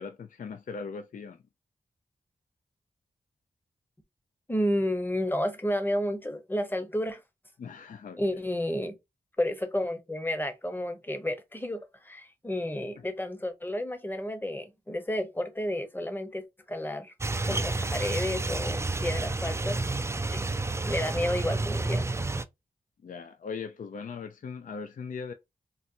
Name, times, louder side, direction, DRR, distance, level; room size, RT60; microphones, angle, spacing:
voice 1, 0.0-1.4 7.6-8.4 17.5-17.9 23.0-25.3, left 5 dB, 60° left, 0.4 m, -40 dB
voice 2, 4.5-7.2 8.2-9.0 9.4-17.1 17.5-19.8 20.3-20.4 20.8-22.1, left 1 dB, 15° left, 0.8 m, -31 dB
sound 1, 17.2-22.5, right 2 dB, 20° right, 0.4 m, -30 dB
4.0 x 2.1 x 2.5 m
cardioid pair, 60°, 15 cm